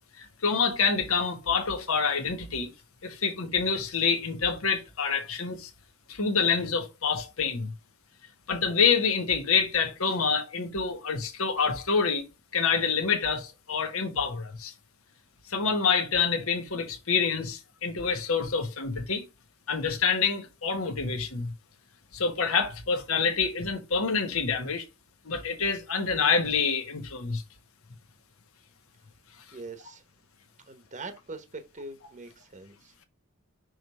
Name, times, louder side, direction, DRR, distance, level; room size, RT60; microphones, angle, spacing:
voice 1, 0.2-2.7 3.0-5.7 6.1-7.7 8.5-12.2 12.5-14.7 15.4-19.3 19.7-21.5 22.1-24.9 25.2-27.4, left 5 dB, 65° left, 1.3 m, -27 dB
voice 2, 29.5-30.0 30.7-32.9, right 3 dB, 35° right, 1.0 m, -42 dB
6.2 x 3.2 x 5.3 m
head